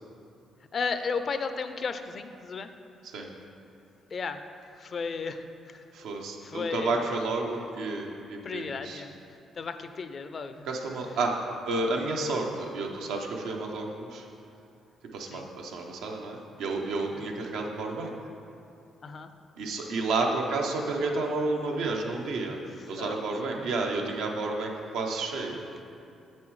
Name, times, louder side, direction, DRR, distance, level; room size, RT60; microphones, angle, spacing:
voice 1, 0.7-2.7 4.1-4.4 4.8-5.8 6.4-7.2 8.4-9.2 9.6-10.7 15.3-15.5 17.1-17.2 19.0-19.3 22.8-23.2 23.5-23.7, left 5 dB, 45° left, 9 dB, 0.4 m, -34 dB
voice 2, 5.9-9.0 10.7-11.3 11.7-14.2 15.1-18.1 19.6-22.6 22.9-25.6, right 3 dB, 85° right, 1 dB, 0.8 m, -31 dB
7.4 x 7.1 x 3.1 m, 2.7 s
cardioid pair, 90°, 0 cm